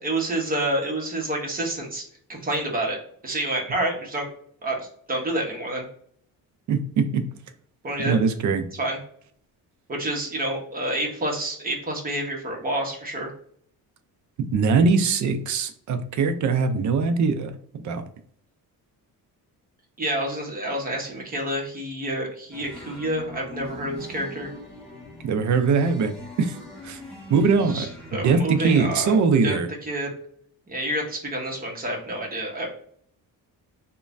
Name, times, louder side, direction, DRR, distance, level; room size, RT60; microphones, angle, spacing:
voice 1, 0.0-2.0 2.3-3.0 3.2-4.3 4.6-4.8 5.1-5.8 7.8-8.2 8.7-9.0 9.9-13.3 20.0-24.5 27.7-29.1 29.4-29.6 29.9-30.1 30.7-32.7, right 1 dB, 25° right, 0 dB, 0.8 m, -28 dB
voice 2, 6.7-7.2 8.0-8.7 14.5-18.0 25.2-26.1 26.4-26.6 26.8-27.0 27.3-27.9 28.1-29.7, right 5 dB, 50° right, 8 dB, 0.4 m, -21 dB
sound 1, 22.5-29.1, left 2 dB, ahead, 1.4 m, -42 dB
3.1 x 2.2 x 2.5 m, 0.62 s
cardioid pair, 120°, 37 cm